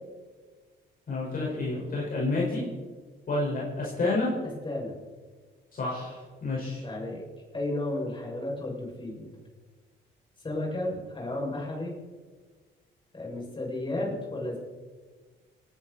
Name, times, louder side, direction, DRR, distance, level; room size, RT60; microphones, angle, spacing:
voice 1, 1.1-2.6 3.3-4.3 5.7-6.8, left 2 dB, 45° left, -5 dB, 5.5 m, -29 dB
voice 2, 4.6-4.9 6.8-7.2 7.5-9.3 10.4-12.0 13.1-14.6, left 1 dB, 25° left, -3 dB, 7.0 m, -33 dB
29.0 x 11.0 x 4.4 m, 1.4 s
cardioid pair, 90°, 20 cm